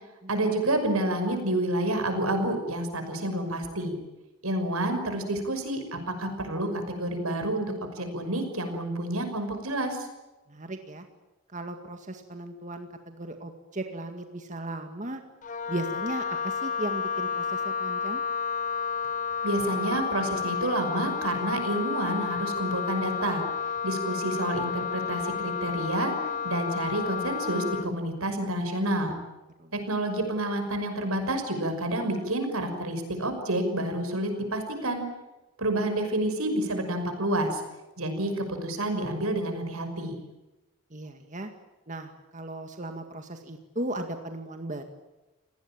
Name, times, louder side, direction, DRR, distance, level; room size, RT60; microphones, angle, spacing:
voice 1, 0.3-4.0 4.4-10.1 19.4-23.5 23.8-29.2 29.7-35.1 35.6-37.6 38.0-40.2, right 1 dB, 90° right, 7 dB, 6.1 m, -29 dB
voice 2, 10.5-11.1 11.5-15.2 15.7-18.2 29.6-29.8 40.9-41.5 41.9-44.8, right 1 dB, 35° right, 5 dB, 2.0 m, -36 dB
Wind instrument woodwind instrument, 15.4-27.9, left 6 dB, 35° left, 0.9 m, -31 dB
29.0 x 19.0 x 9.0 m, 1.1 s
head